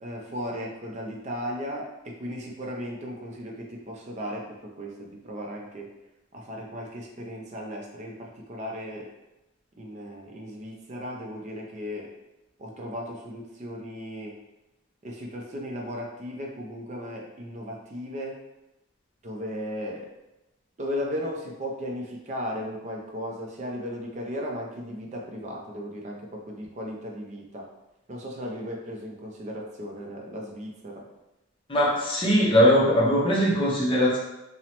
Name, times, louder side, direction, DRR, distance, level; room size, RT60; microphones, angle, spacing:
voice 1, 0.0-5.9 6.3-9.1 9.8-12.1 12.6-14.4 15.0-18.4 19.2-20.1 20.8-27.7 28.1-31.0, equal, 35° right, 0 dB, 0.4 m, -36 dB
voice 2, 31.7-34.2, equal, 25° left, -5 dB, 0.5 m, -20 dB
2.9 x 2.0 x 2.8 m, 0.97 s
head